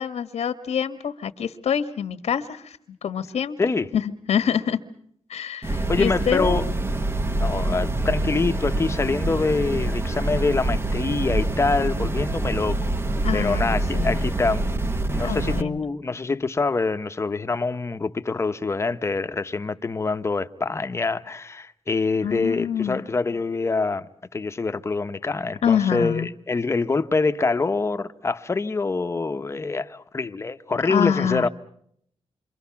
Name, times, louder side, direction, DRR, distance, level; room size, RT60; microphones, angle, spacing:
voice 1, 0.0-3.6 3.9-4.8 5.3-6.6 13.2-14.2 15.2-15.8 22.2-23.0 25.6-26.3 30.8-31.5, left 8 dB, 85° left, 1.4 m, -26 dB
sound 1, 5.6-15.6, right 2 dB, 20° right, 0.9 m, -25 dB
voice 2, 5.9-6.6 7.4-12.8 13.3-14.7 15.1-31.5, left 3 dB, 25° left, 1.0 m, -25 dB
28.0 x 25.0 x 5.8 m
wide cardioid pair, 165°, 11 cm